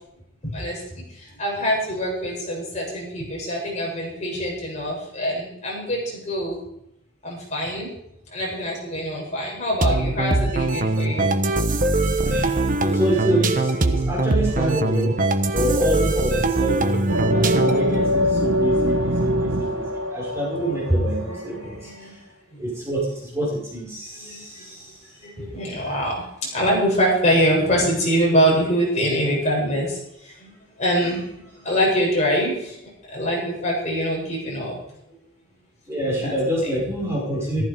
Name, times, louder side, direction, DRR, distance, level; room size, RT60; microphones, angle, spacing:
voice 1, 0.5-6.6 7.2-7.9 8.3-11.3 20.7-22.2 22.5-22.8 24.1-24.6 25.2-26.2 26.5-30.5 30.8-32.8 33.1-34.8 36.2-36.4 36.6-36.7 37.3-37.6, equal, 35° left, -3 dB, 7.7 m, -24 dB
sound 1, 9.8-17.9, right 2 dB, 40° right, 1.2 m, -22 dB
voice 2, 12.2-15.3 15.5-22.1 22.6-25.0 35.9-37.6, right 1 dB, 15° right, -4 dB, 5.3 m, -26 dB
sound 2, 17.1-21.7, equal, 80° right, 1.4 m, -23 dB
15.0 x 14.5 x 5.1 m, 0.78 s
head